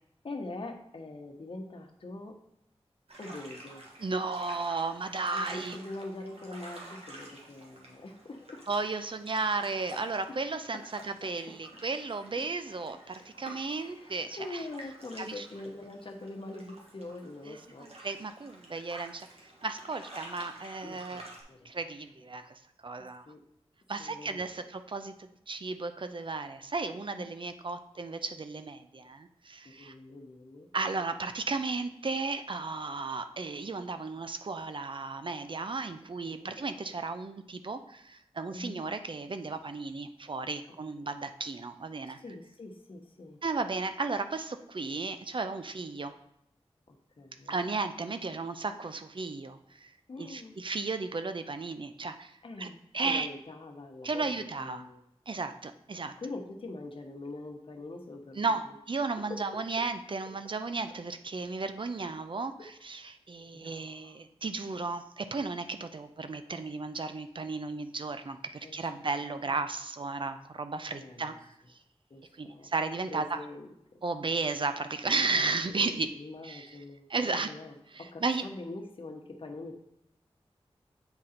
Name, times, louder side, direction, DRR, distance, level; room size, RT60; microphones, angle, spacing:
voice 1, 0.2-2.4 3.2-3.8 5.3-8.7 10.3-10.4 10.7-11.3 11.7-11.8 12.9-13.0 13.5-18.1 20.8-21.7 23.3-23.4 24.0-24.4 27.1-27.3 29.6-30.7 36.2-36.5 38.5-38.8 40.7-41.1 42.0-43.4 46.9-47.7 50.1-50.5 52.4-55.0 56.0-58.8 59.2-59.8 60.7-60.8 62.6-63.1 63.5-64.2 68.6-69.1 70.9-71.4 72.1-72.7 73.1-74.0 75.0-75.2 75.7-79.8, left 2 dB, 60° left, 3 dB, 1.0 m, -44 dB
Water lapping on lake Pukaki South Island New Zealand, 3.1-21.4, right 1 dB, 70° right, 1.5 m, -50 dB
voice 2, 4.0-5.8 8.7-10.8 11.2-14.6 15.2-15.5 17.5-17.6 18.0-19.3 19.6-21.2 21.6-23.2 23.9-29.9 30.7-42.2 43.4-46.1 47.5-49.9 50.2-52.7 52.9-53.3 54.0-54.9 55.3-56.1 58.4-68.4 68.7-71.3 72.4-73.4 74.0-76.1 76.4-76.7 77.1-77.5 77.9-78.4, right 3 dB, 50° right, 9 dB, 0.5 m, -34 dB
7.9 x 3.8 x 4.3 m, 0.81 s
wide cardioid pair, 60°, 11 cm